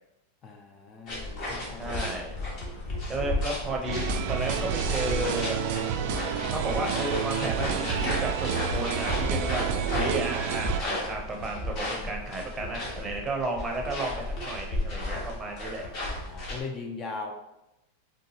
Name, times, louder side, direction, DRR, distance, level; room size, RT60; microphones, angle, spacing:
voice 1, 0.4-1.9 16.3-17.3, left 4 dB, 30° left, 3 dB, 0.4 m, -39 dB
sound 1, 1.1-16.6, left 2 dB, 50° left, 1.3 m, -33 dB
voice 2, 1.8-2.4 3.1-5.7 6.5-15.9, right 2 dB, 15° right, 0 dB, 0.6 m, -33 dB
sound 2, 3.9-10.8, right 8 dB, 60° right, 0.3 m, -30 dB
3.9 x 2.2 x 2.8 m, 0.90 s
hypercardioid pair, 120°, 0 cm